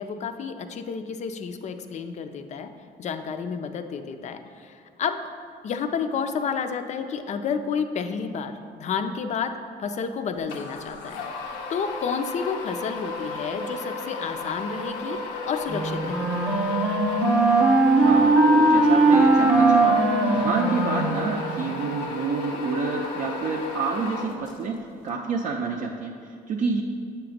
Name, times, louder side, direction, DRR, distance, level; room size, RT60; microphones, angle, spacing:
voice 1, 0.0-2.7 3.0-5.2 5.6-9.5 9.8-16.4, left 6 dB, 45° left, 8 dB, 0.4 m, -31 dB
sound 1, 10.5-24.8, left 3 dB, 85° left, 0.7 m, -34 dB
Wind instrument woodwind instrument, 15.7-21.8, right 2 dB, 5° right, 0.7 m, -20 dB
voice 2, 18.0-20.0 20.3-24.7 25.0-26.8, right 4 dB, 45° right, 0 dB, 0.5 m, -28 dB
7.7 x 3.0 x 5.0 m, 2.4 s
cardioid pair, 110°, 17 cm